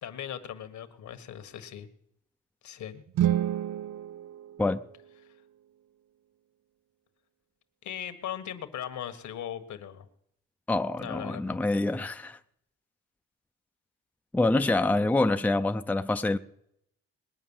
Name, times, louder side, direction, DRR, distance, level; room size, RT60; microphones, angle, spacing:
voice 1, 0.0-1.9 2.6-3.0 7.8-10.1 11.0-11.6, left 10 dB, 70° left, 1.6 m, -39 dB
sound 1, 3.1-5.3, right 12 dB, 75° right, 0.7 m, -30 dB
voice 2, 10.7-12.4 14.3-16.4, left 2 dB, 5° left, 0.6 m, -26 dB
20.5 x 9.1 x 7.2 m
cardioid pair, 90°, 30 cm